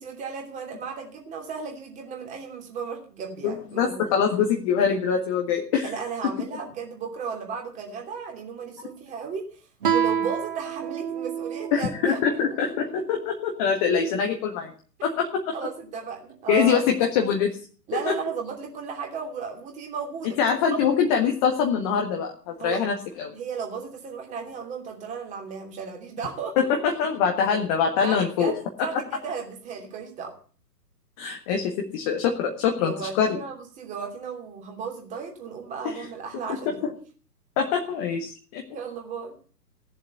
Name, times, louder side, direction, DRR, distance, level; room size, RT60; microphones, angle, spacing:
voice 1, 0.0-4.1 5.8-9.5 9.9-12.2 15.5-16.8 17.9-20.4 20.7-20.9 22.6-22.8 23.3-26.6 28.0-30.3 32.8-36.9 38.7-39.3, right 6 dB, 15° right, 1 dB, 3.0 m, -34 dB
voice 2, 3.4-5.9 11.7-14.7 15.0-15.6 16.5-17.5 18.1-18.2 20.4-23.3 26.6-28.5 31.2-33.4 35.8-36.1 36.8-36.9 37.6-38.6, left 7 dB, 20° left, 2 dB, 1.5 m, -24 dB
Guitar, 9.8-13.1, right 8 dB, 30° right, 0.8 m, -29 dB
17.0 x 7.4 x 8.1 m, 0.42 s
figure-of-eight pair, 130°, 49 cm